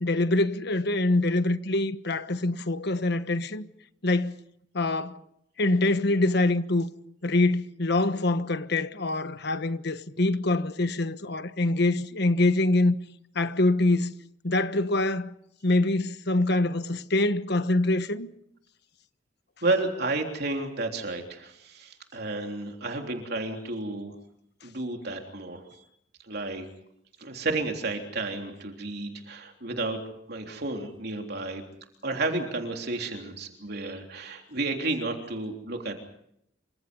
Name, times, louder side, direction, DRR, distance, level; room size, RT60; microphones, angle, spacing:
voice 1, 0.0-3.7 4.0-4.4 4.7-5.2 5.6-6.9 7.2-12.9 13.3-14.1 14.4-15.3 15.6-18.3, left 2 dB, 65° left, 1.3 m, -25 dB
voice 2, 19.6-24.2 24.6-25.8 26.2-26.7 27.2-30.0 30.3-31.6 32.0-36.0, right 2 dB, 60° right, 3.5 m, -31 dB
28.0 x 25.5 x 5.4 m
head